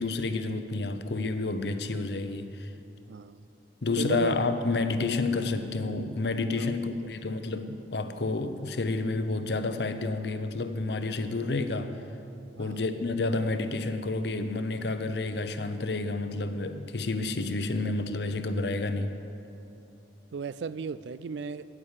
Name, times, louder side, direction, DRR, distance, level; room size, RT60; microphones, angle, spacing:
voice 1, 0.0-2.7 3.8-11.9 12.6-19.2, left 3 dB, 70° left, 9 dB, 0.7 m, -30 dB
voice 2, 3.1-3.4 4.0-4.4 6.6-7.0 12.6-12.8 20.3-21.6, right 5 dB, 80° right, 16 dB, 0.4 m, -35 dB
9.8 x 9.6 x 7.3 m, 2.8 s
head